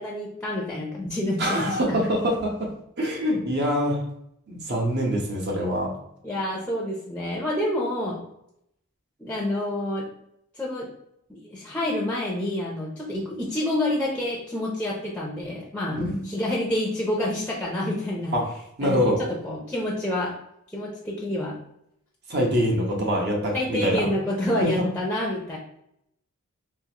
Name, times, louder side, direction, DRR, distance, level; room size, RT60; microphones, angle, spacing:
voice 1, 0.0-2.0 6.2-8.2 9.2-10.1 10.5-10.9 11.3-18.4 18.8-20.3 20.7-21.6 23.5-25.6, left 1 dB, 5° left, -4 dB, 0.6 m, -28 dB
voice 2, 1.4-2.7 3.0-4.0 4.5-5.9 15.9-16.2 18.3-18.5 18.8-19.2 22.3-24.0 24.6-24.7, equal, 55° right, -1 dB, 1.0 m, -24 dB
3.8 x 2.5 x 2.9 m, 0.77 s
head